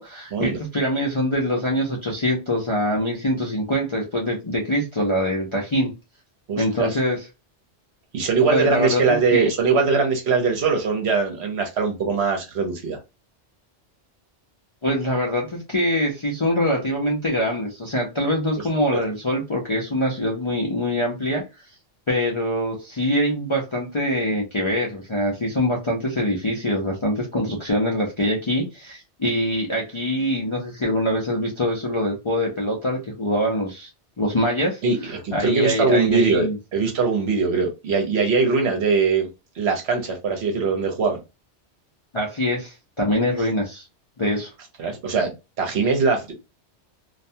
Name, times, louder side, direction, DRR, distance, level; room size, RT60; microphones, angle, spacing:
voice 1, 0.0-5.9 6.6-7.3 8.5-9.5 14.8-21.4 22.1-33.9 34.2-36.6 42.1-43.8 44.2-44.5, equal, 40° left, 0.4 m, -24 dB
voice 2, 6.5-6.9 8.1-13.0 18.9-19.0 34.8-35.0 35.2-39.3 39.6-41.2 44.8-46.3, right 4 dB, 65° right, 1.0 m, -21 dB
2.4 x 2.2 x 2.6 m
omnidirectional pair, 1.2 m